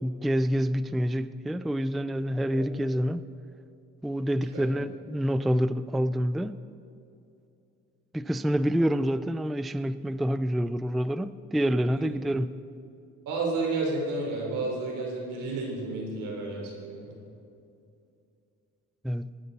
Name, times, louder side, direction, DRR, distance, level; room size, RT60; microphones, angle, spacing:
voice 1, 0.0-3.3 4.0-6.6 8.1-12.6 19.0-19.3, equal, ahead, 0.3 m, -27 dB
voice 2, 13.3-17.2, right 3 dB, 90° right, 3.8 m, -31 dB
19.5 x 12.0 x 4.1 m
cardioid pair, 90°, 30 cm